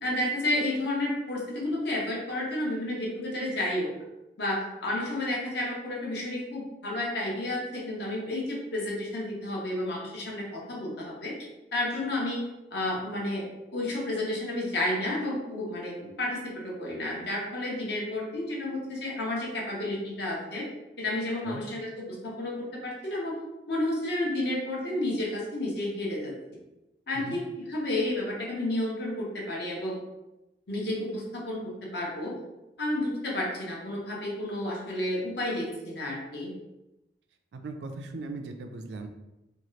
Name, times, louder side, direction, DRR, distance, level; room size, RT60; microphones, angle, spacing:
voice 1, 0.0-3.9 4.4-11.3 11.7-12.4 12.7-13.4 13.7-20.7 21.0-23.3 23.7-26.3 27.1-27.4 27.7-30.0 30.7-32.3 32.8-36.5, left 1 dB, 65° left, -3 dB, 0.9 m, -31 dB
voice 2, 37.5-39.1, right 3 dB, 70° right, 6 dB, 0.3 m, -38 dB
2.8 x 2.3 x 3.1 m, 0.97 s
head